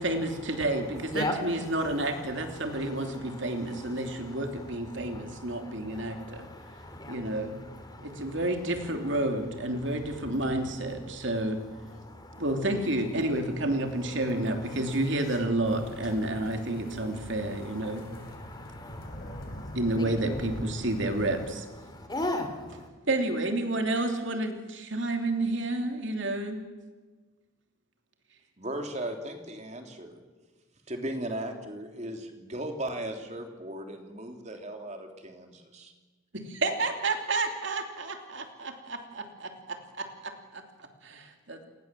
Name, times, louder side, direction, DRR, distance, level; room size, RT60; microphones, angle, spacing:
voice 1, 0.0-6.5 7.1-7.6 8.0-11.6 12.4-18.1 19.7-21.7 23.1-26.6 36.3-41.6, right 2 dB, 60° right, 5 dB, 3.0 m, -30 dB
voice 2, 1.1-8.4 10.0-10.6 11.0-11.3 11.8-12.4 14.0-14.3 14.6-15.1 15.7-20.4 21.8-22.9, left 1 dB, 20° left, 7 dB, 3.2 m, -40 dB
sound 1, 15.6-21.5, equal, 45° left, 3.8 m, -43 dB
voice 3, 28.6-30.2 30.9-35.9, right 1 dB, 35° right, 4 dB, 3.3 m, -37 dB
29.5 x 19.5 x 7.6 m, 1.3 s
head